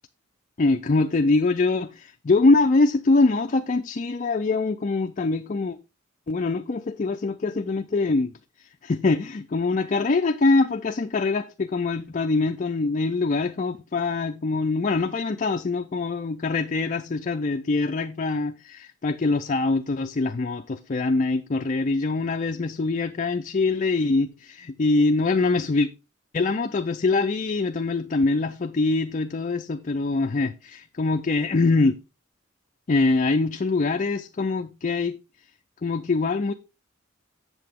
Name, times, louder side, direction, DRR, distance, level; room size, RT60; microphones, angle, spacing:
voice 1, 0.6-5.8 6.3-8.3 8.8-25.9 26.3-32.0 32.9-35.1 35.8-36.5, left 3 dB, 40° left, 0.4 m, -23 dB
8.0 x 7.4 x 3.6 m
head